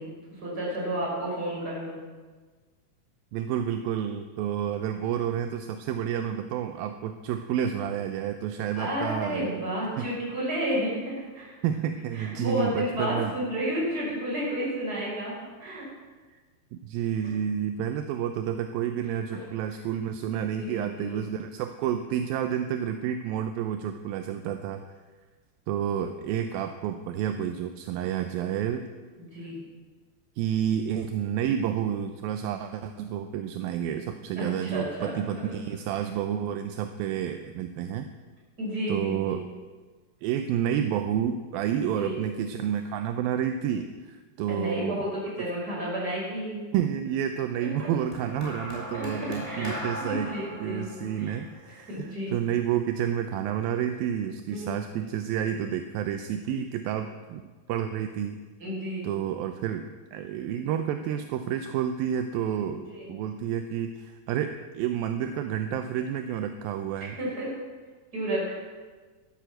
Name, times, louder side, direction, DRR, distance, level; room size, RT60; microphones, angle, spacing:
voice 1, 0.0-2.0 8.7-11.5 12.1-15.8 19.3-19.4 20.3-21.3 29.3-29.6 34.4-35.5 38.6-39.4 41.9-42.2 44.5-46.7 47.6-47.9 48.9-49.7 50.1-51.4 51.7-52.4 54.5-54.7 58.6-59.1 63.0-63.1 67.0-67.5 68.1-68.5, equal, 20° right, -5 dB, 6.7 m, -32 dB
voice 2, 3.3-9.5 10.0-10.1 11.6-13.3 16.3-16.4 16.7-24.8 25.7-28.9 29.4-29.5 30.4-38.1 38.9-39.4 40.2-45.0 46.7-50.3 50.6-57.4 57.7-58.4 59.0-67.2, right 9 dB, 80° right, 8 dB, 2.3 m, -30 dB
sound 1, 48.1-52.5 53.5-53.7, equal, 10° left, 3.4 m, -39 dB
13.0 x 11.5 x 7.8 m, 1.4 s
omnidirectional pair, 4.6 m